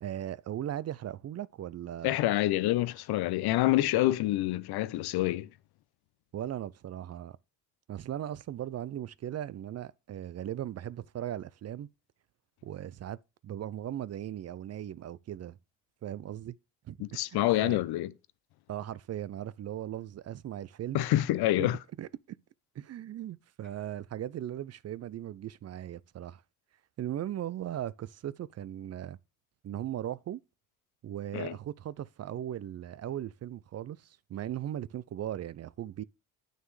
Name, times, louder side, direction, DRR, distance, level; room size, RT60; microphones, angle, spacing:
voice 1, 0.0-2.1 6.3-7.4 7.9-11.9 12.6-13.2 13.4-15.6 16.0-16.5 16.8-17.8 18.7-21.0 21.6-22.1 22.8-26.4 27.0-29.2 29.6-30.4 31.0-36.0, right 11 dB, 40° right, 0.4 m, -38 dB
voice 2, 2.0-5.5 17.0-18.1 20.9-21.8 31.3-31.5, left 16 dB, 70° left, 0.7 m, -27 dB
9.1 x 6.5 x 3.2 m
supercardioid pair, 65°, 39 cm